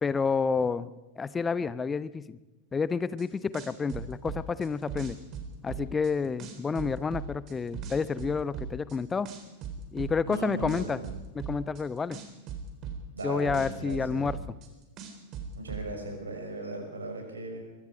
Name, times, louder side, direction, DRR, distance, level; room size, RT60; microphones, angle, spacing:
voice 1, 0.0-2.4 2.7-5.2 5.6-9.3 9.9-11.0 11.3-12.2 13.2-14.4, left 5 dB, 15° left, 17 dB, 0.8 m, -29 dB
sound 1, 3.2-3.3 3.5-6.1 6.4-9.0 9.3-11.8 12.1-14.7 15.0-15.8, right 7 dB, 35° right, 3.9 m, -38 dB
voice 2, 10.2-11.1 13.1-14.3 15.5-17.6, right 2 dB, 75° right, 2 dB, 6.0 m, -37 dB
24.0 x 22.5 x 5.2 m, 1.1 s
figure-of-eight pair, 90°, 0 cm